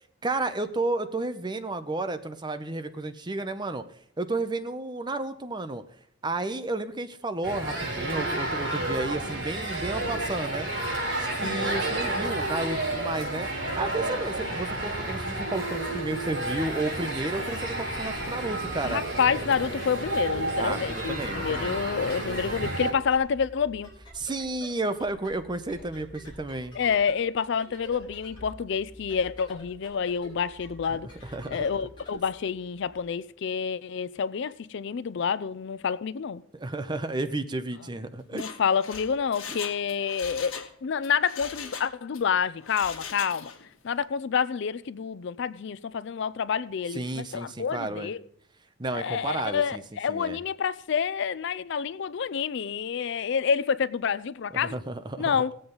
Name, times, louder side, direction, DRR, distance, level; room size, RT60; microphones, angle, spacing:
voice 1, 0.2-3.8 4.2-5.8 6.2-10.7 11.2-13.5 13.8-19.0 20.6-21.8 24.2-26.8 30.9-31.7 36.5-38.5 46.9-48.1 48.8-49.8 50.1-50.4 54.5-55.5, right 2 dB, 20° right, 0.7 m, -32 dB
sound 1, 7.4-22.9, right 2 dB, 70° right, 4.5 m, -31 dB
voice 2, 11.4-11.8 18.8-23.9 26.7-31.1 31.5-36.4 38.3-43.5 43.8-48.2 48.9-54.8 55.2-55.5, left 6 dB, 60° left, 0.4 m, -28 dB
sound 2, 17.3-33.0, equal, 25° left, 4.8 m, -48 dB
Mechanisms, 38.2-40.7 41.0-42.2 42.6-43.7 44.0-44.1, left 6 dB, 80° left, 1.5 m, -40 dB
18.0 x 7.8 x 3.9 m
head